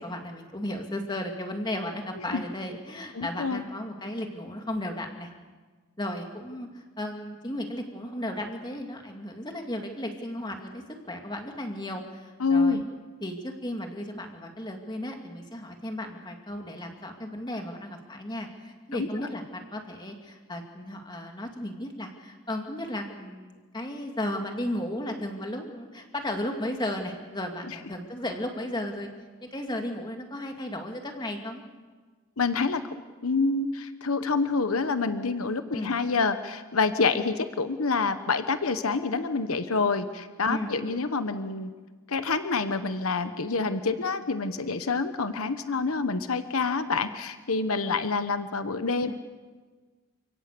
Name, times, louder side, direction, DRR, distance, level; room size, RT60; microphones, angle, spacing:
voice 1, 0.0-5.3 6.0-12.8 13.2-29.1 29.4-31.6 35.7-35.9 40.5-40.7 49.1-49.2, left 1 dB, 20° left, 3 dB, 2.4 m, -35 dB
voice 2, 3.1-3.6 12.4-12.8 18.9-19.1 27.7-27.8 32.4-32.8 33.2-41.7 42.1-49.1, left 4 dB, 80° left, 10 dB, 1.1 m, -27 dB
29.0 x 17.5 x 6.9 m, 1.4 s
head